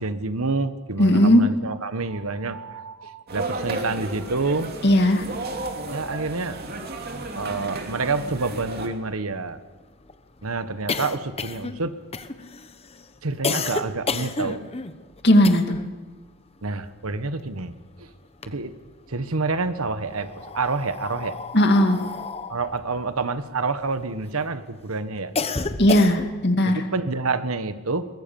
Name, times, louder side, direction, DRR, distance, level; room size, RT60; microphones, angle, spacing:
voice 1, 0.0-4.7 5.9-6.6 7.4-9.6 10.4-11.9 13.2-14.6 16.6-17.7 18.0-18.1 18.5-18.7 19.1-21.4 22.5-25.3 26.7-28.1, right 3 dB, 80° right, 12 dB, 1.3 m, -28 dB
voice 2, 1.0-1.4 4.8-5.2 15.2-15.8 21.5-22.0 25.8-26.8, left 1 dB, 50° left, 5 dB, 2.3 m, -17 dB
sound 1, 3.3-8.9, right 2 dB, 45° right, 2.6 m, -33 dB
sound 2, 8.9-16.0 16.3-17.8 18.2-19.1 19.9-24.3 24.8-26.5, left 4 dB, 25° left, 1.0 m, -32 dB
23.0 x 20.0 x 7.1 m, 1.3 s
head